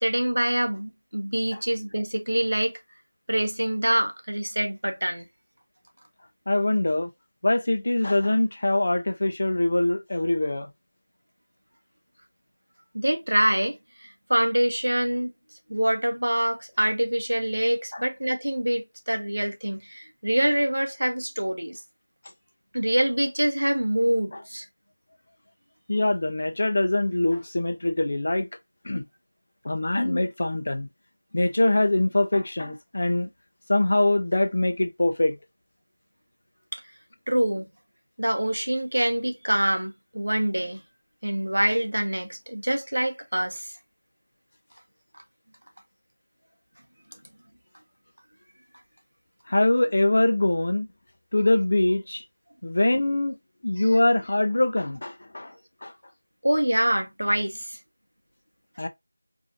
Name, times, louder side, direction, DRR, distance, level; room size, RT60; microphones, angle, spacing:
voice 1, 0.0-2.8 3.3-5.3 12.9-15.3 15.7-21.8 22.7-24.7 36.7-36.8 37.3-37.7 38.2-40.8 41.2-43.7 45.1-45.2 53.8-53.9 56.4-57.8, right 1 dB, 85° right, 1.3 m, -25 dB
voice 2, 6.5-7.1 7.4-10.7 17.9-18.0 25.9-28.5 28.8-29.0 29.6-30.9 31.3-33.3 33.7-35.4 49.5-50.9 51.3-52.2 52.6-53.4 53.6-55.5 55.8-55.9 58.8-58.9, left 2 dB, 40° left, 0.7 m, -23 dB
4.8 x 2.6 x 2.6 m
figure-of-eight pair, 175°, 0 cm